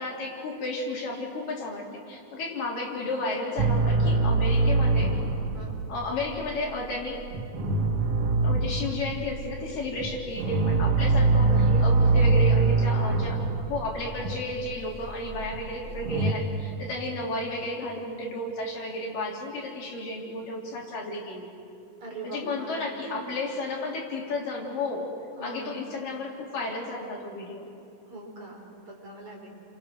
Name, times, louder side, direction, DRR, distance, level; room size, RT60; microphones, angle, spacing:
voice 1, 0.0-5.1 5.9-7.3 8.4-13.4 13.7-21.5 22.2-25.1 25.4-27.6, left 2 dB, 70° left, -2 dB, 4.9 m, -33 dB
sound 1, 3.6-16.3, right 3 dB, 55° right, 1.9 m, -24 dB
voice 2, 11.5-12.2 15.2-15.4 22.0-23.4 25.4-25.8 28.1-29.5, right 2 dB, 40° right, -1 dB, 4.8 m, -41 dB
29.0 x 27.0 x 6.4 m, 2.7 s
omnidirectional pair, 4.1 m